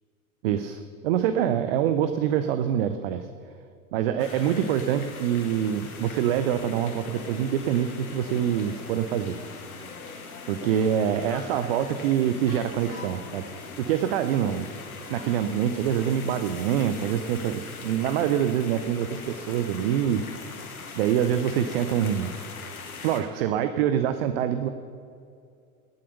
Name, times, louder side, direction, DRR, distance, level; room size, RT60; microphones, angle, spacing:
voice 1, 0.4-3.3 3.9-9.4 10.5-13.4 13.8-14.7 15.1-20.2 20.5-20.6 20.9-22.3 23.0-24.7, right 9 dB, 45° right, 10 dB, 0.7 m, -25 dB
sound 1, 4.2-23.2, left 4 dB, 75° left, 2.0 m, -41 dB
18.5 x 8.0 x 6.6 m, 2.4 s
figure-of-eight pair, 90°, 44 cm